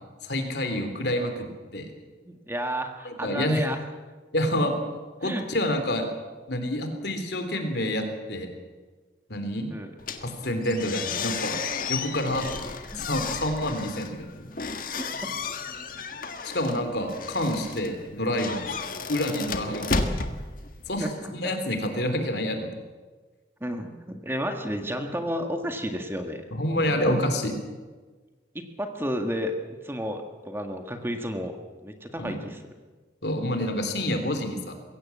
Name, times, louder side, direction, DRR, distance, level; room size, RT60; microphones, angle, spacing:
voice 1, 0.2-1.3 1.7-1.9 3.1-3.6 4.3-4.8 5.2-6.0 6.5-8.5 9.3-9.7 10.2-11.6 11.9-12.5 13.0-14.5 16.4-18.6 19.1-20.2 20.9-22.7 26.5-27.5 32.2-32.4 33.2-34.7, left 1 dB, 65° left, 7 dB, 3.5 m, -28 dB
voice 2, 2.2-3.8 5.2-5.5 9.7-9.9 12.9-13.1 15.0-15.1 20.0-20.2 21.0-21.5 23.6-26.4 26.7-27.0 28.5-29.5 29.8-31.6 31.8-32.6, equal, 15° right, 5 dB, 1.7 m, -32 dB
sound 1, 10.0-21.1, left 4 dB, 50° left, 1.7 m, -33 dB
22.5 x 16.5 x 8.5 m, 1.4 s
head